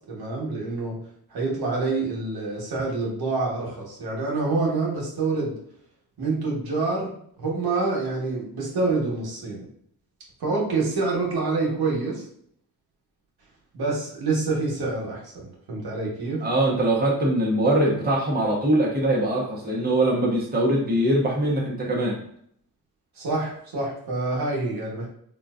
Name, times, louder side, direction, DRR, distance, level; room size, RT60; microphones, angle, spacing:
voice 1, 0.1-1.0 1.3-5.5 6.2-9.6 10.4-12.2 13.7-15.3 15.7-16.4 23.1-25.1, right 3 dB, 70° right, -3 dB, 1.2 m, -27 dB
voice 2, 16.4-22.2, right 1 dB, 25° right, -2 dB, 1.0 m, -22 dB
3.7 x 2.4 x 2.4 m, 0.65 s
cardioid pair, 70°, 38 cm